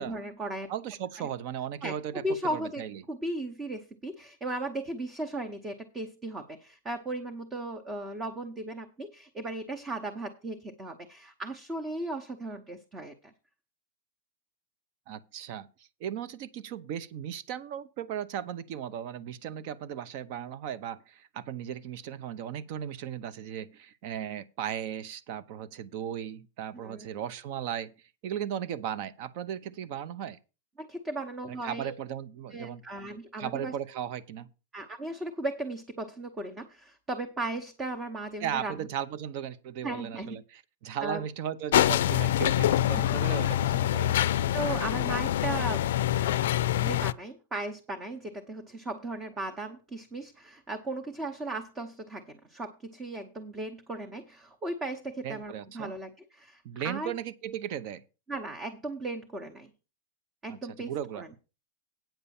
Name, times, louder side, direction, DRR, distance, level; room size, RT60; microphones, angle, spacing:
voice 1, 0.0-0.7 1.8-13.3 26.8-27.1 30.8-31.9 32.5-33.8 34.7-38.8 39.8-40.4 41.0-41.2 42.8-43.1 44.5-46.5 46.8-57.1 58.3-59.7 60.4-61.3, right 2 dB, 15° right, 0.9 m, -36 dB
voice 2, 0.7-2.2 2.5-3.0 15.1-27.9 28.2-30.4 31.6-32.8 33.4-34.5 38.4-44.3 55.2-55.9 56.6-58.0 60.5-61.4, right 9 dB, 45° right, 0.8 m, -36 dB
sound 1, 41.7-47.1, left 12 dB, 75° left, 0.4 m, -25 dB
9.2 x 5.4 x 7.1 m
supercardioid pair, 155°, 0 cm